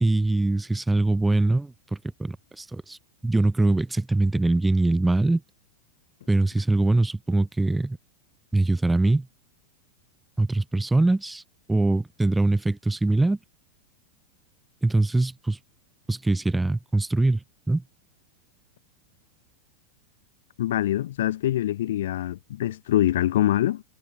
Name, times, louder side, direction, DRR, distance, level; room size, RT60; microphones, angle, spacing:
voice 1, 0.0-3.0 3.2-5.4 6.3-8.0 8.5-9.3 10.4-11.4 11.7-13.4 14.8-15.6 16.1-17.8, right 2 dB, 5° right, 1.0 m, -23 dB
voice 2, 20.6-23.8, left 13 dB, 60° left, 0.4 m, -24 dB
figure-of-eight pair, 90°, 0 cm